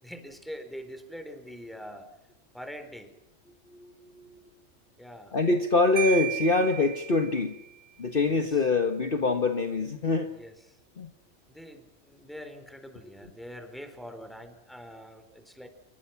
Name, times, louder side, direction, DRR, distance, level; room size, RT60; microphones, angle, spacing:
voice 1, 0.0-2.1 2.5-3.1 5.0-5.4 8.2-8.7 10.3-10.8 11.5-15.7, equal, ahead, 8 dB, 4.2 m, -44 dB
voice 2, 3.7-4.4 5.3-7.6 8.0-10.3 11.0-11.1, left 3 dB, 40° left, 7 dB, 1.6 m, -25 dB
Marimba xylophone, 6.0-7.7, right 11 dB, 60° right, 1.8 m, -34 dB
28.5 x 24.5 x 6.0 m, 0.85 s
omnidirectional pair, 1.4 m